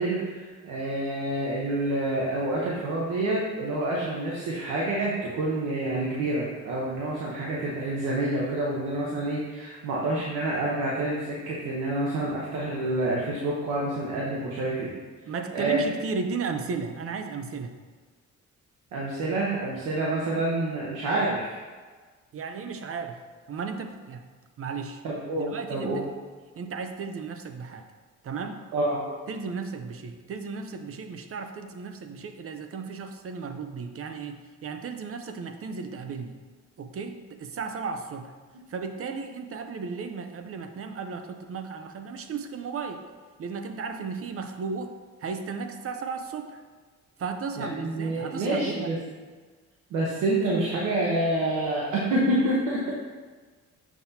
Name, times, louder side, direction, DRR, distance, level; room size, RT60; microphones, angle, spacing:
voice 1, 0.0-14.9 15.5-15.8 18.9-21.6 25.0-26.0 28.7-29.1 47.6-49.0 49.9-52.9, right 2 dB, 90° right, -4 dB, 1.1 m, -28 dB
voice 2, 15.2-17.8 22.3-24.2 24.6-25.0 25.4-26.0 26.6-27.9 28.2-28.7 29.3-36.4 36.8-38.3 38.7-43.0 43.4-46.6 47.2-48.9, right 5 dB, 50° right, 7 dB, 0.6 m, -35 dB
7.1 x 6.0 x 2.8 m, 1.4 s
cardioid pair, 90°, 30 cm